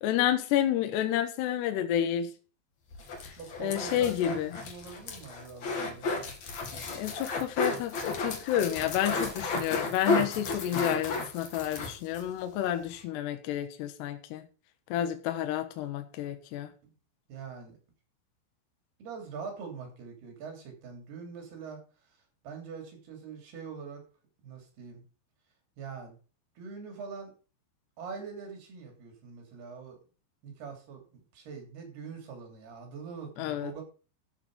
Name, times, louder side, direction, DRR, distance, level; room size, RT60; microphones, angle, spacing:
voice 1, 0.0-2.3 3.2-4.6 6.9-14.5 14.9-16.7 33.4-33.7, left 11 dB, 70° left, 2.9 m, -30 dB
sound 1, 2.9-12.3 12.6-12.7 12.9-13.0, left 3 dB, 45° left, 2.6 m, -33 dB
voice 2, 3.3-6.2 16.8-16.9 17.3-17.8 19.0-21.8 22.1-22.2 22.4-24.0 24.4-25.0 25.8-26.2 26.6-27.3 28.0-30.0 30.4-33.8, right 5 dB, 55° right, 4.9 m, -43 dB
13.0 x 7.2 x 5.0 m
omnidirectional pair, 5.6 m